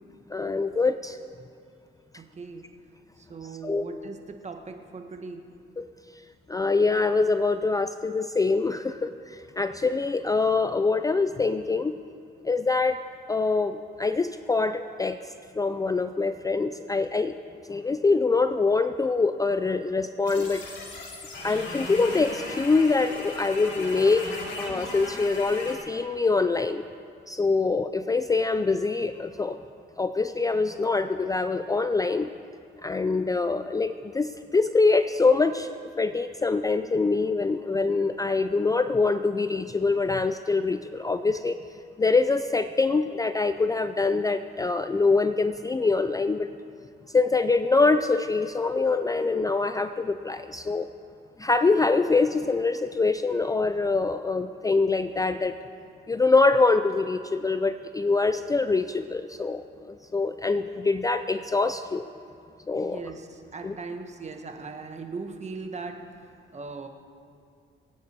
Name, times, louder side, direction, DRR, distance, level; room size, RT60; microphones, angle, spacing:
voice 1, 0.3-1.2 3.6-3.8 5.8-5.9 6.5-11.9 12.4-13.0 13.3-15.2 15.5-17.3 17.7-20.6 21.4-24.3 24.6-26.8 27.3-29.6 30.0-32.3 32.8-35.7 36.0-41.6 42.0-46.5 47.1-50.9 51.4-55.6 56.1-62.0 62.7-63.0 63.6-63.8, left 3 dB, 15° left, 10 dB, 0.4 m, -24 dB
voice 2, 2.2-2.6 3.2-5.5 62.7-66.0 66.5-66.9, right 4 dB, 35° right, 5 dB, 1.5 m, -39 dB
sound 1, 20.2-25.8, left 2 dB, 80° left, 3.9 m, -37 dB
23.5 x 9.3 x 4.6 m, 2.4 s
cardioid pair, 90°, 20 cm